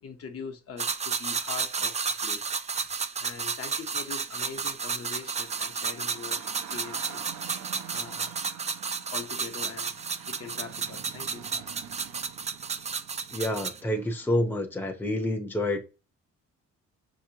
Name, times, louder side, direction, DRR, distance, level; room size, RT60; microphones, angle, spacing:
voice 1, 0.0-2.6 3.2-7.3 7.9-8.3 9.1-10.0 10.2-11.7, left 6 dB, 50° left, 0.9 m, -42 dB
sound 1, 0.8-13.8, right 5 dB, 25° right, 0.4 m, -32 dB
sound 2, 3.9-14.3, right 9 dB, 75° right, 0.8 m, -47 dB
voice 2, 13.3-15.9, left 1 dB, 5° left, 0.7 m, -28 dB
5.8 x 2.9 x 2.8 m
cardioid pair, 90°, 30 cm